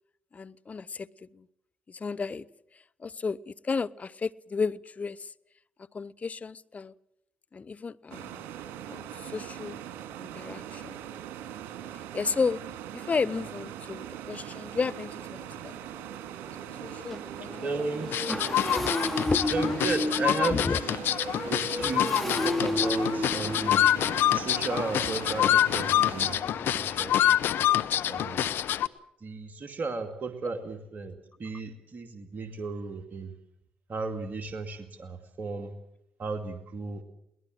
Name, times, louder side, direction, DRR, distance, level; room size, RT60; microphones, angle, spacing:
voice 1, 0.3-1.5 1.9-2.5 3.0-5.3 5.9-6.9 7.5-8.4 8.9-9.8 10.2-11.0 12.1-12.6 12.9-15.8 16.6-17.7 18.7-18.9 19.3-19.5 20.5-20.8 21.8-21.9 30.5-30.6, left 4 dB, 40° left, 0.8 m, -33 dB
sound 1, 8.1-26.4, right 10 dB, 80° right, 2.1 m, -41 dB
Motorcycle, 14.5-14.6 15.1-15.2 15.5-27.1, left 1 dB, 5° left, 2.7 m, -34 dB
voice 2, 17.6-18.1 19.5-21.0 21.5-23.9 24.3-26.4 26.6-27.4 28.1-28.5 29.2-31.1 31.4-33.3 33.9-35.7 36.2-37.0, right 4 dB, 50° right, 2.3 m, -34 dB
sound 2, 18.1-28.9, left 11 dB, 70° left, 0.9 m, -26 dB
22.0 x 19.0 x 7.8 m
hypercardioid pair, 50°, 4 cm